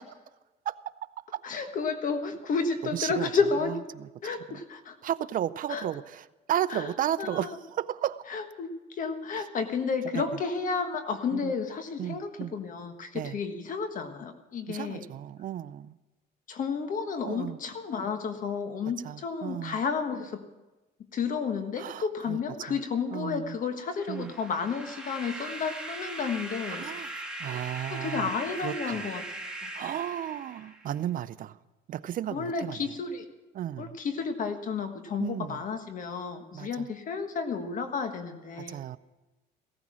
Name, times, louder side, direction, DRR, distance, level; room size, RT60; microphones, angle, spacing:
voice 1, 1.4-3.7 4.2-5.0 5.7-5.8 6.7-6.9 7.2-7.6 8.3-15.0 16.5-20.4 21.1-26.8 27.9-29.2 29.6-29.7 32.3-33.2 33.8-38.8, left 5 dB, 50° left, 7 dB, 1.4 m, -31 dB
voice 2, 2.9-3.3 4.5-4.6 5.0-8.2 10.1-10.3 11.3-11.5 12.0-12.5 13.1-13.4 14.7-16.0 17.3-17.6 19.0-19.8 21.8-22.4 22.7-22.8 23.1-23.6 24.1-24.3 26.8-27.1 27.4-28.3 28.6-29.1 29.7-31.6 31.9-32.8 33.5-33.9 35.2-35.6 36.5-36.9 38.6-39.0, right 11 dB, 55° right, 16 dB, 0.6 m, -33 dB
sound 1, 23.9-31.0, right 2 dB, 5° right, 2.1 m, -40 dB
16.5 x 13.5 x 6.2 m, 1.1 s
cardioid pair, 110°, 17 cm